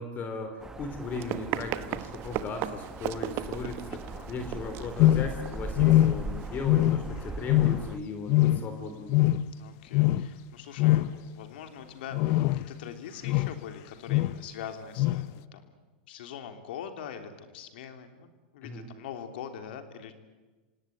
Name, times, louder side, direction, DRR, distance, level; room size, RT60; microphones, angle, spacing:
voice 1, 0.0-4.0 4.3-9.2 18.6-18.9, left 3 dB, 30° left, 7 dB, 3.4 m, -37 dB
sound 1, 0.6-8.0, right 3 dB, 10° right, 1.4 m, -40 dB
Run, 1.0-6.5, right 13 dB, 45° right, 1.2 m, -37 dB
voice 2, 3.6-4.3 9.6-15.7 16.1-20.1, left 8 dB, 70° left, 7 dB, 3.2 m, -43 dB
sound 2, 5.0-5.5 5.8-6.4 6.6-7.2 7.5-8.0 8.3-8.8 9.1-9.6 9.9-10.3 10.8-11.2 12.1-12.7 13.2-13.6 14.1-14.4 15.0-15.3, left 15 dB, 50° left, 0.7 m, -23 dB
26.5 x 18.0 x 9.4 m, 1.2 s
hypercardioid pair, 120°, 6 cm